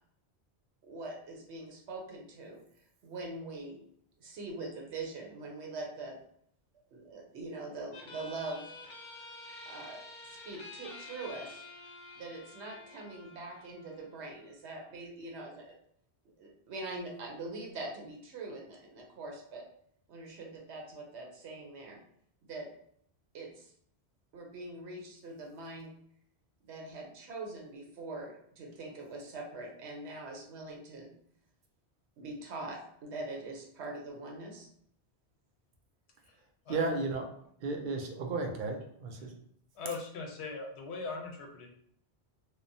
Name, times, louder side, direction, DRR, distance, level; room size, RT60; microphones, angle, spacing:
voice 1, 0.8-2.6 3.0-3.8 4.2-6.2 6.9-8.7 9.7-11.6 12.2-15.8 16.4-19.6 20.1-22.0 22.4-22.7 23.3-23.7 24.3-25.9 26.6-31.1 32.2-34.7, right 2 dB, 85° right, 0 dB, 1.0 m, -43 dB
sound 1, 7.9-14.9, left 2 dB, 55° left, 0.6 m, -49 dB
voice 2, 36.4-37.3 37.6-39.3, right 3 dB, 60° right, 3 dB, 0.6 m, -34 dB
voice 3, 39.7-41.7, left 4 dB, 85° left, 1 dB, 0.9 m, -40 dB
2.9 x 2.0 x 2.6 m, 0.67 s
omnidirectional pair, 1.1 m